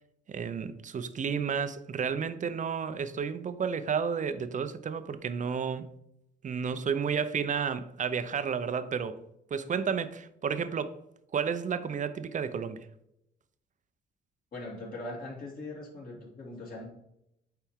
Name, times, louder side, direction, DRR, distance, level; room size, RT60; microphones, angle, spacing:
voice 1, 0.3-5.9 6.4-9.2 9.5-11.0 11.3-12.9, right 6 dB, 40° right, 0.6 m, -31 dB
voice 2, 14.5-16.8, left 2 dB, 45° left, 2.6 m, -41 dB
9.0 x 3.4 x 3.6 m
cardioid pair, 90°, 20 cm